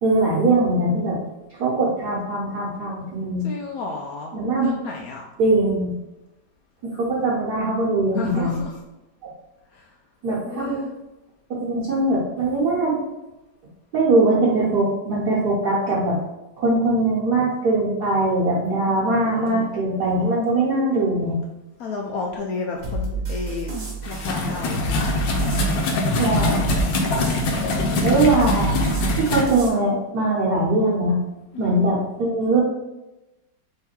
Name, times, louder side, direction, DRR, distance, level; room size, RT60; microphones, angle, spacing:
voice 1, 0.0-1.2 1.6-3.5 4.3-4.7 5.4-5.9 6.8-8.6 10.2-10.8 11.5-13.0 13.9-16.1 16.6-21.4 26.2-26.6 28.0-28.7 29.1-31.2 31.6-32.6, right 2 dB, 65° right, -6 dB, 1.4 m, -21 dB
voice 2, 3.4-4.3 4.6-5.3 8.1-8.8 9.7-9.9 10.4-10.9 18.8-19.7 21.8-23.7 24.1-25.2 27.4-28.1 31.5-31.9, left 4 dB, 70° left, 0 dB, 0.8 m, -32 dB
sound 1, 22.8-29.7, right 2 dB, 35° right, 1.2 m, -29 dB
sound 2, 24.0-29.4, left 2 dB, 90° left, 1.5 m, -23 dB
3.8 x 3.2 x 4.4 m, 1.0 s
omnidirectional pair, 2.0 m